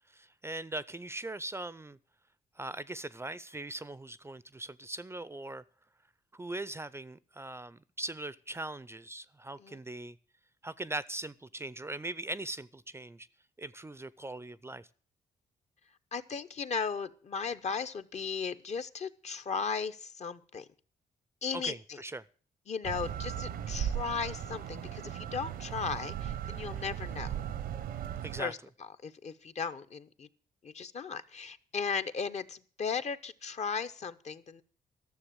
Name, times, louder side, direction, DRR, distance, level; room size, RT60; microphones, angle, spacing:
voice 1, 0.1-2.0 2.6-5.6 6.3-10.2 10.6-13.3 13.6-14.9 21.5-22.2 28.2-28.5, right 2 dB, 15° right, 18 dB, 0.5 m, -40 dB
voice 2, 16.1-20.6 21.4-22.0 22.7-27.4 28.4-28.6 29.0-30.3 30.6-34.6, left 5 dB, 45° left, 12 dB, 0.9 m, -36 dB
sound 1, 22.8-28.4, right 10 dB, 85° right, 1.0 m, -37 dB
13.0 x 6.9 x 8.7 m, 0.43 s
cardioid pair, 80°, 15 cm